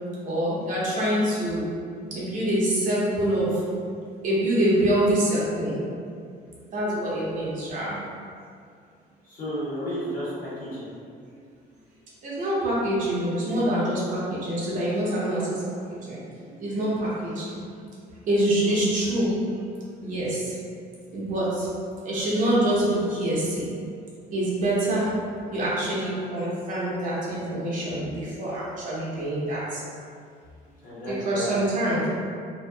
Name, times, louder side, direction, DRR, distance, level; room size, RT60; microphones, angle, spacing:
voice 1, 0.2-1.7 2.1-3.8 4.2-5.8 6.7-8.0 12.2-15.6 15.9-16.2 16.6-17.5 18.2-19.4 20.0-20.5 21.1-21.7 22.0-23.7 24.3-25.2 25.5-29.8 31.1-32.1, right 1 dB, 50° right, -7 dB, 0.7 m, -25 dB
voice 2, 9.2-10.9 18.6-18.8 30.8-32.2, equal, 55° left, -10 dB, 1.3 m, -33 dB
2.7 x 2.2 x 2.2 m, 2.3 s
cardioid pair, 110°, 17 cm